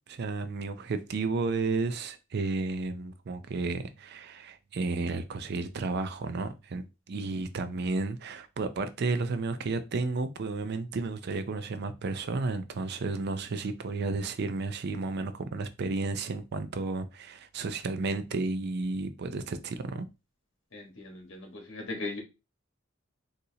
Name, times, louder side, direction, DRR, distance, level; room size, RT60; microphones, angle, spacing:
voice 1, 0.1-20.1, right 3 dB, 55° right, 0.4 m, -32 dB
voice 2, 20.7-22.2, left 2 dB, 70° left, 1.3 m, -38 dB
4.1 x 2.5 x 2.8 m
head